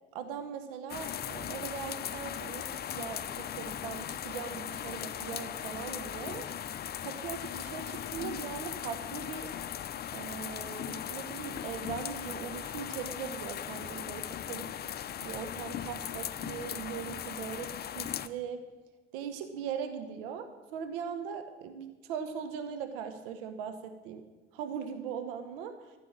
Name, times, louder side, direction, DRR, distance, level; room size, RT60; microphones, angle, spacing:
voice 1, 0.1-2.7 2.9-6.5 7.0-9.5 10.1-14.7 15.2-18.6 19.1-24.2 24.5-25.9, right 7 dB, 65° right, 8 dB, 1.0 m, -40 dB
sound 1, 0.9-18.3, left 10 dB, 30° left, 0.6 m, -38 dB
14.0 x 6.6 x 7.3 m, 1.2 s
figure-of-eight pair, 60°, 31 cm